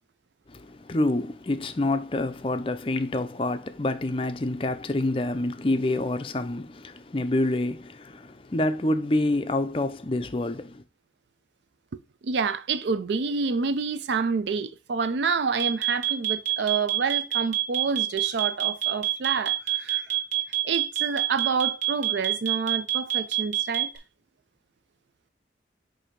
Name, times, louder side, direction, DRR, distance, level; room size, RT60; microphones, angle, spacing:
voice 1, 0.5-10.8, left 2 dB, 30° left, 0.5 m, -27 dB
voice 2, 11.9-20.1 20.6-23.9, right 5 dB, 80° right, 0.4 m, -28 dB
sound 1, 15.6-24.0, right 15 dB, 45° right, 1.4 m, -25 dB
7.2 x 2.7 x 5.1 m
head